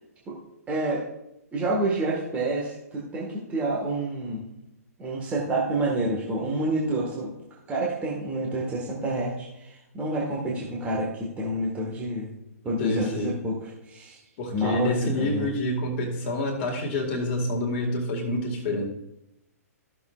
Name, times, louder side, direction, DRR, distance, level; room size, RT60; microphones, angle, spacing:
voice 1, 0.7-1.1 1.5-4.5 5.0-7.4 7.7-12.3 12.6-14.2 14.5-15.5, right 1 dB, 15° right, -4 dB, 1.9 m, -28 dB
voice 2, 12.8-13.3 14.4-18.9, left 1 dB, 40° left, 1 dB, 2.1 m, -27 dB
14.0 x 6.9 x 2.5 m, 0.86 s
figure-of-eight pair, 120°, 9 cm